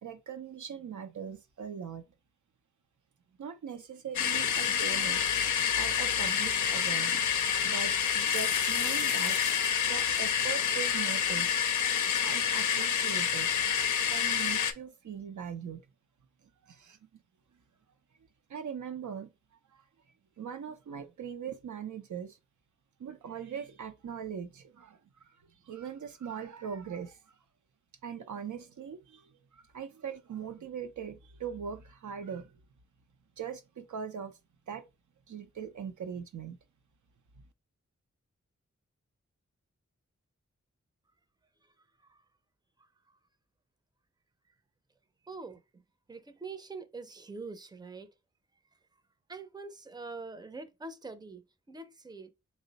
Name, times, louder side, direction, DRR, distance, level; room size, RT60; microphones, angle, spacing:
voice 1, 0.0-2.0 3.4-5.2 5.8-9.4 9.9-11.6 12.2-13.5 14.1-15.8 16.7-17.0 18.5-19.3 20.4-22.4 23.0-25.0 25.7-27.2 28.0-29.2 29.7-32.5 33.4-34.3 34.7-34.8 35.3-36.6, right 7 dB, 80° right, 0.6 m, -40 dB
sound 1, 4.1-14.7, left 8 dB, 85° left, 0.5 m, -28 dB
voice 2, 45.3-45.8 46.1-48.1 49.3-51.4 51.7-52.3, right 3 dB, 15° right, 0.5 m, -44 dB
3.4 x 2.1 x 3.9 m
cardioid pair, 45°, 29 cm